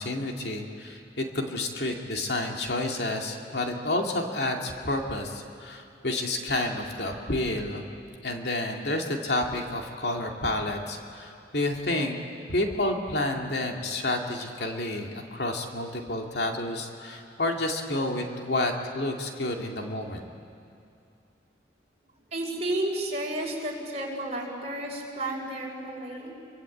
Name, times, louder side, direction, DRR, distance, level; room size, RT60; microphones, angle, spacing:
voice 1, 0.0-7.8 8.2-12.2 12.5-20.2, left 2 dB, 70° left, 2 dB, 2.5 m, -30 dB
voice 2, 22.3-26.3, right 1 dB, 35° right, -1 dB, 5.3 m, -32 dB
28.0 x 24.0 x 8.6 m, 2.6 s
head